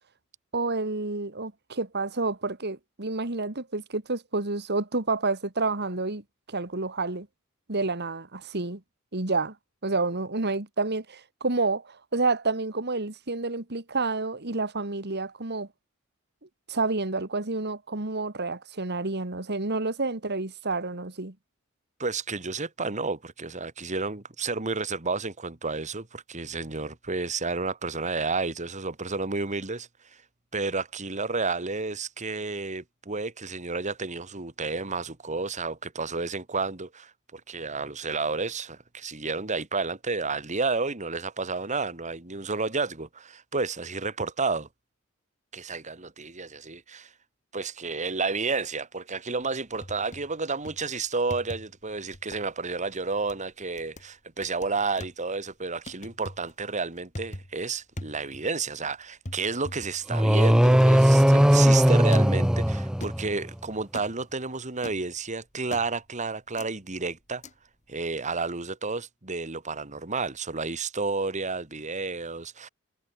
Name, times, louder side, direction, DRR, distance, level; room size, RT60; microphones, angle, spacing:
voice 1, 0.5-6.2 6.5-7.3 7.7-8.8 9.1-9.5 9.8-15.7 16.7-21.3, right 3 dB, 50° right, 2.4 m, -29 dB
voice 2, 22.0-29.9 30.5-44.7 45.5-47.1 47.5-67.4 67.9-72.7, right 4 dB, 35° right, 2.1 m, -31 dB
sound 1, 49.4-50.4 50.7-50.9 51.3-51.8 52.1-52.5 52.9-53.4 53.8-54.1 54.4-55.1 55.9-56.5 57.0-57.6 58.0-58.6 58.8-58.9 59.3-61.5 62.1-62.5 63.0-63.5 63.9-64.2 64.8-65.1 65.7-66.0 66.6-66.7 67.4-67.5, left 1 dB, 35° left, 3.4 m, -42 dB
sound 2, 60.1-63.4, equal, 5° right, 0.5 m, -19 dB
head